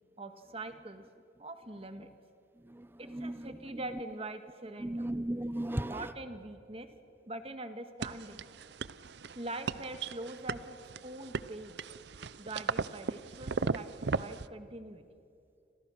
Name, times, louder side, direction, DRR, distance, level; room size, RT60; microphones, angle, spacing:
voice 1, 0.2-1.0 1.4-2.1 3.0-5.0 5.9-6.9 7.3-8.4 9.3-11.8 12.4-15.0, right 2 dB, 30° right, 8 dB, 1.6 m, -43 dB
voice 2, 2.6-4.0 4.8-6.1, right 1 dB, 10° right, 14 dB, 0.6 m, -37 dB
sound 1, 8.0-14.5, right 4 dB, 65° right, 0.6 m, -37 dB
28.0 x 27.0 x 6.5 m, 2.6 s
head